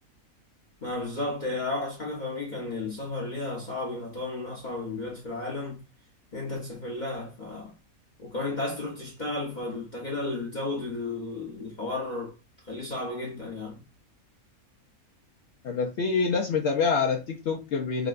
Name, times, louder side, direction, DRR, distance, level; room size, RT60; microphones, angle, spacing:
voice 1, 0.8-5.8 6.3-7.7 8.2-12.3 12.7-13.8, left 2 dB, 35° left, 0.9 m, -33 dB
voice 2, 15.6-18.1, left 5 dB, 65° left, 0.7 m, -26 dB
4.8 x 2.2 x 2.3 m
omnidirectional pair, 1.5 m